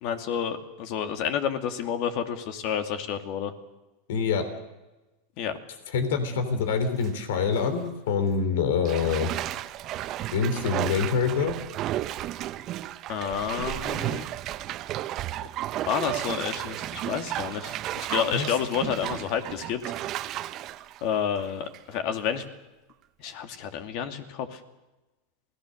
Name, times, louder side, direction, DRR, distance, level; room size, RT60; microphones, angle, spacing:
voice 1, 0.0-3.5 5.4-5.6 13.1-14.3 15.9-19.8 21.0-22.4 23.2-24.6, left 8 dB, 60° left, 7 dB, 2.6 m, -30 dB
voice 2, 4.1-4.4 5.9-9.3 10.3-11.6 18.3-18.5, left 5 dB, 80° left, 10 dB, 3.4 m, -25 dB
Bathtub (filling or washing), 6.7-7.1 7.5-7.7 8.8-22.0 22.4-22.5, right 13 dB, 45° right, 1.0 m, -33 dB
27.5 x 18.5 x 6.6 m, 1.1 s
hypercardioid pair, 110°, 0 cm